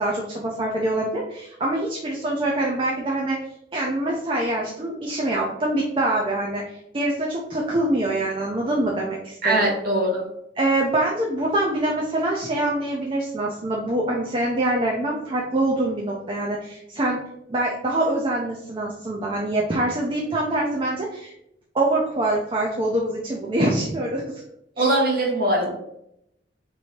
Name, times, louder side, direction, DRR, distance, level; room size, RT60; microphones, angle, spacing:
voice 1, 0.0-3.4 3.7-9.7 10.6-17.2 17.5-21.3 21.7-24.4 24.8-24.9, right 1 dB, 30° right, -2 dB, 0.5 m, -24 dB
voice 2, 9.4-10.2 24.8-25.7, right 1 dB, 55° right, -2 dB, 1.2 m, -21 dB
3.1 x 2.7 x 4.2 m, 0.78 s
head